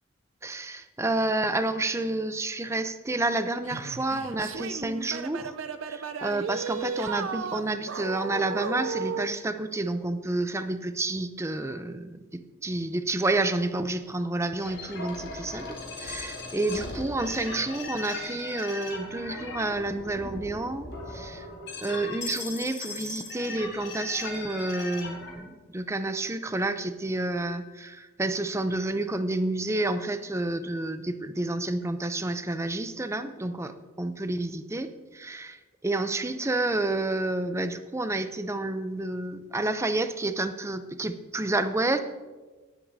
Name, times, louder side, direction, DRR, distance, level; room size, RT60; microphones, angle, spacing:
voice 1, 0.4-5.6 5.9-21.5 21.8-35.6 35.8-42.0, right 2 dB, 15° right, 10 dB, 0.5 m, -29 dB
sound 1, 3.6-9.3, right 5 dB, 70° right, 0.6 m, -34 dB
sound 2, 14.6-25.3, left 3 dB, 60° left, 4.3 m, -38 dB
19.0 x 8.9 x 2.7 m, 1.3 s
head